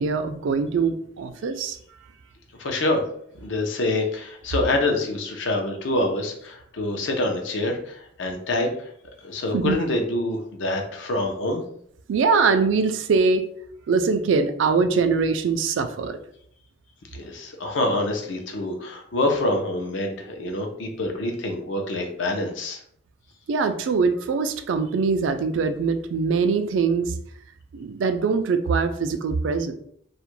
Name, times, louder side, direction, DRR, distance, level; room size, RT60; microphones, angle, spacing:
voice 1, 0.0-1.8 9.5-9.8 12.1-13.5 13.9-16.2 23.5-27.1 27.7-29.7, right 4 dB, 75° right, 9 dB, 0.3 m, -22 dB
voice 2, 2.6-3.0 3.4-8.9 9.2-11.6 17.1-22.8, left 2 dB, 75° left, 3 dB, 0.5 m, -26 dB
2.4 x 2.1 x 3.0 m, 0.66 s
head